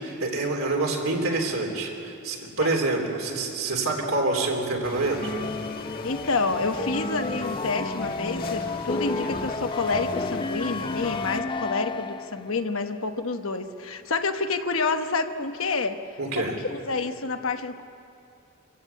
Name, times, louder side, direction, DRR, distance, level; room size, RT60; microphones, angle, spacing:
voice 1, 0.0-5.3 16.2-16.6, right 2 dB, 70° right, 0 dB, 3.7 m, -27 dB
sound 1, 4.8-11.4, left 3 dB, 45° left, 1.6 m, -38 dB
sound 2, 5.2-12.5, left 3 dB, 25° left, 0.5 m, -32 dB
voice 2, 6.0-16.0 16.3-17.8, left 3 dB, 70° left, 7 dB, 1.1 m, -28 dB
25.5 x 15.5 x 8.4 m, 2.7 s
head